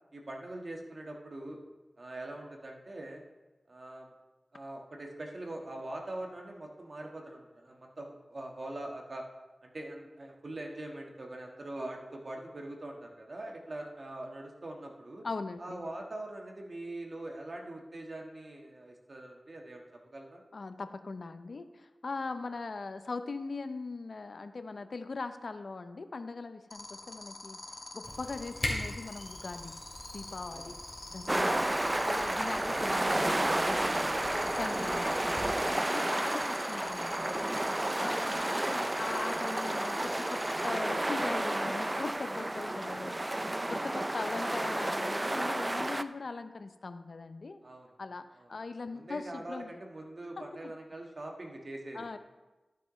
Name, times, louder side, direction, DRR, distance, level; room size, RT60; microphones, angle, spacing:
voice 1, 0.1-1.6 2.0-3.2 3.7-4.1 4.5-9.3 9.6-15.3 15.6-20.4 30.5-30.7 33.9-34.5 37.9-38.2 47.6-48.0 48.3-48.5 48.9-52.1, right 1 dB, 55° right, 1 dB, 1.5 m, -43 dB
voice 2, 15.2-15.8 20.5-30.8 31.1-31.7 32.0-35.3 35.7-37.6 38.0-43.3 43.7-47.6 48.0-49.7 50.4-50.7 51.9-52.2, left 3 dB, 65° left, 10 dB, 0.6 m, -41 dB
sound 1, 26.7-40.7, left 2 dB, 50° left, 1.1 m, -46 dB
Camera, 28.0-35.5, left 1 dB, 30° left, 2.6 m, -43 dB
sound 2, 31.3-46.0, right 1 dB, 25° right, 0.4 m, -31 dB
12.0 x 6.7 x 3.1 m, 1.1 s
wide cardioid pair, 60°, 0 cm